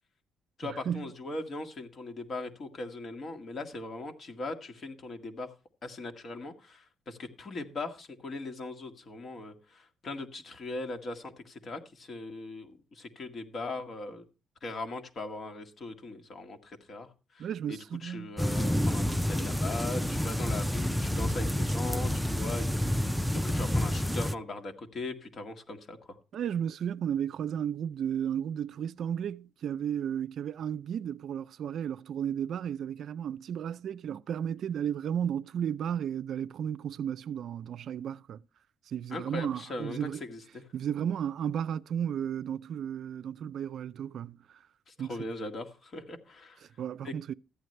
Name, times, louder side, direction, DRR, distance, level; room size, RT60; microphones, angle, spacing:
voice 1, 0.6-5.5 5.8-14.2 14.6-26.2 39.1-40.6 44.9-46.7 47.0-47.1, left 2 dB, 45° left, 2.0 m, -40 dB
voice 2, 17.4-18.4 26.3-38.4 38.9-40.2 40.7-44.6 45.0-45.2 46.8-47.3, right 9 dB, 65° right, 0.4 m, -34 dB
sound 1, 18.4-24.3, left 1 dB, ahead, 0.5 m, -29 dB
14.0 x 9.3 x 3.3 m
cardioid pair, 90°, 0 cm